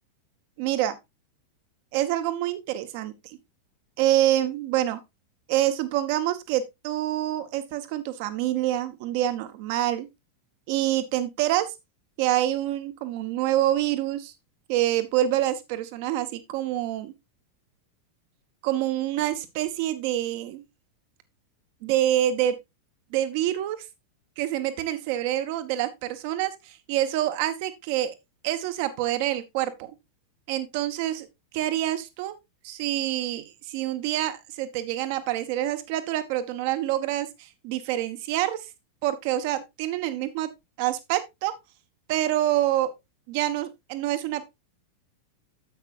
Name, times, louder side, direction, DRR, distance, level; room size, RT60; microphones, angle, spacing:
voice 1, 0.6-0.9 1.9-3.1 4.0-5.0 5.5-10.1 10.7-11.7 12.2-14.3 14.7-17.1 18.6-20.6 21.8-22.5 23.1-23.8 24.4-28.1 28.4-29.9 30.5-31.3 31.5-32.3 32.6-38.6 39.0-40.5 40.8-41.5 42.1-42.9 43.3-44.5, right 13 dB, 50° right, 1.2 m, -26 dB
10.0 x 8.0 x 2.6 m
figure-of-eight pair, 90°, 0 cm